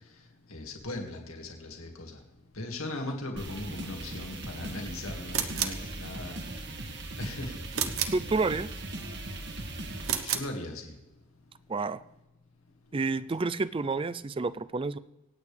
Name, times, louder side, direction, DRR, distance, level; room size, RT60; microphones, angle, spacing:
voice 1, 0.5-2.2 2.5-6.4 7.2-7.5 10.2-10.9, left 2 dB, 80° left, 2 dB, 2.2 m, -38 dB
sound 1, 3.4-10.2, right 1 dB, 55° right, 2.0 m, -39 dB
sound 2, 5.3-5.9 7.7-8.3 10.0-10.5, right 9 dB, 75° right, 1.1 m, -30 dB
voice 2, 8.1-8.7 11.7-12.0 12.9-15.0, right 3 dB, 25° right, 16 dB, 0.4 m, -29 dB
26.0 x 9.0 x 3.4 m, 1.0 s
head